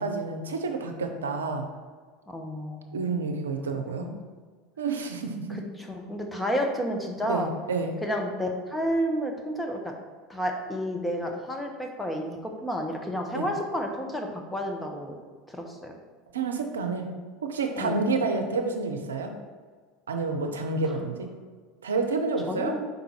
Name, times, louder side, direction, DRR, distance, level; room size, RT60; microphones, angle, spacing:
voice 1, 0.0-1.7 2.9-4.1 4.8-5.6 7.3-7.9 13.3-13.5 16.3-17.1 17.5-19.3 20.1-21.3 21.8-22.8, right 3 dB, 85° right, 5 dB, 0.6 m, -29 dB
voice 2, 2.3-3.0 4.0-4.2 5.5-7.5 8.0-9.9 10.3-15.1 15.5-15.9 17.8-18.0 21.0-21.1 22.5-22.8, equal, 5° left, 2 dB, 1.1 m, -31 dB
5.3 x 3.9 x 4.5 m, 1.6 s
hypercardioid pair, 80°, 0 cm